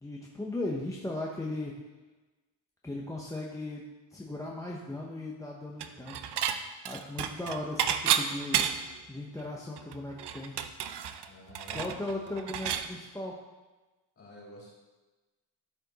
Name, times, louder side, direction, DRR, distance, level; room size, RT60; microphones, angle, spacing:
voice 1, 0.0-1.8 2.8-6.3 6.8-8.7 9.1-10.6 11.7-13.4, left 2 dB, 5° left, -3 dB, 0.7 m, -37 dB
Dishes pots and pans / Chink clink, 5.8-6.6 6.9-9.0 9.4-9.5 9.8-12.9, right 9 dB, 60° right, 0.6 m, -31 dB
voice 2, 11.3-12.0 12.2-12.4 14.2-14.7, left 1 dB, 30° left, -5 dB, 3.2 m, -49 dB
13.0 x 5.0 x 3.9 m, 1.2 s
wide cardioid pair, 160°, 46 cm